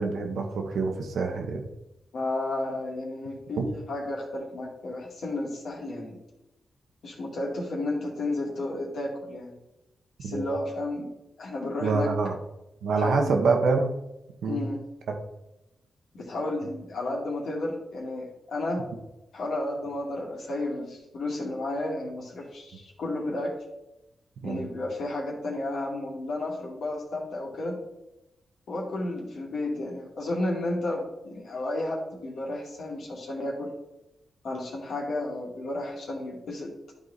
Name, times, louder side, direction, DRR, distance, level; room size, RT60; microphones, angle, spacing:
voice 1, 0.0-1.6 3.6-3.7 10.2-10.4 11.8-12.3 12.8-14.0 14.4-14.6 15.1-15.2 24.4-24.7, right 4 dB, 80° right, 3 dB, 1.2 m, -26 dB
voice 2, 2.1-6.2 7.0-9.5 10.2-11.1 11.4-12.1 13.0-13.3 14.4-14.8 16.1-18.8 19.3-23.5 24.4-27.8 28.7-33.7 34.4-36.7, left 2 dB, 75° left, -1 dB, 2.2 m, -32 dB
11.5 x 4.0 x 4.1 m, 0.94 s
supercardioid pair, 40°, 0 cm